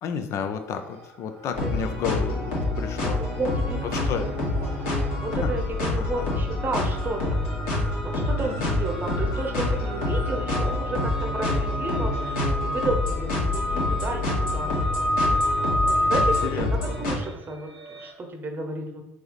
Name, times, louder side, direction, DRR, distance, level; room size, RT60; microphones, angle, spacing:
voice 1, 0.0-3.2 4.1-4.3 5.4-5.5 6.0-6.3 8.4-8.8 16.2-16.7, left 7 dB, 45° left, 7 dB, 0.4 m, -32 dB
sound 1, 0.8-1.2 1.5-18.1, left 1 dB, 80° right, 0.9 m, -31 dB
sound 2, 1.5-17.1, left 2 dB, 60° left, 1.3 m, -27 dB
voice 2, 3.2-4.8 5.2-7.4 8.0-15.2 15.9-19.0, right 2 dB, 30° right, 3 dB, 0.8 m, -32 dB
4.6 x 2.7 x 3.1 m, 0.88 s
figure-of-eight pair, 60°, 7 cm